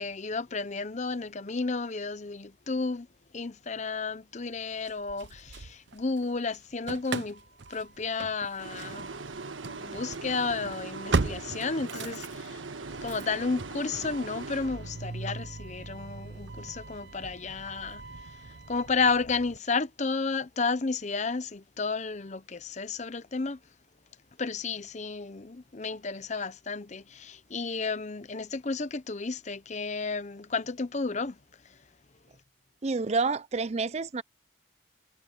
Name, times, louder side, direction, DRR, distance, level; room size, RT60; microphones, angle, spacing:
voice 1, 0.0-3.1 3.3-7.4 7.7-9.1 9.6-12.6 13.0-18.0 18.7-23.6 24.4-31.4, left 4 dB, 40° left, 0.7 m, -32 dB
Engine starting / Slam, 4.9-6.3 6.5-19.6, right 3 dB, 65° right, 0.8 m, -38 dB
sound 1, 8.6-15.3, right 3 dB, 90° right, 1.4 m, -41 dB
voice 2, 32.8-34.2, right 4 dB, 35° right, 0.5 m, -28 dB
head